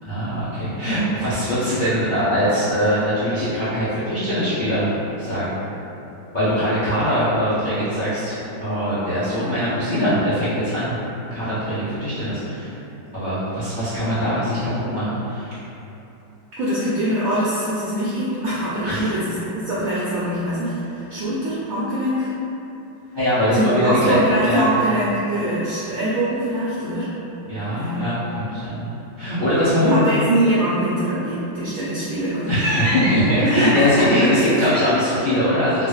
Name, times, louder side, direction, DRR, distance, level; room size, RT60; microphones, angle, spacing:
voice 1, 0.0-5.6 6.3-11.0 11.3-12.7 13.1-15.6 18.8-19.2 23.1-24.2 24.4-24.7 27.4-30.1 32.5-35.9, equal, 40° left, -14 dB, 0.7 m, -22 dB
voice 2, 16.6-22.3 23.5-27.1 27.7-28.0 29.8-32.6 33.4-34.6, right 1 dB, 80° right, -9 dB, 0.7 m, -23 dB
3.8 x 2.1 x 3.1 m, 2.9 s
omnidirectional pair, 2.1 m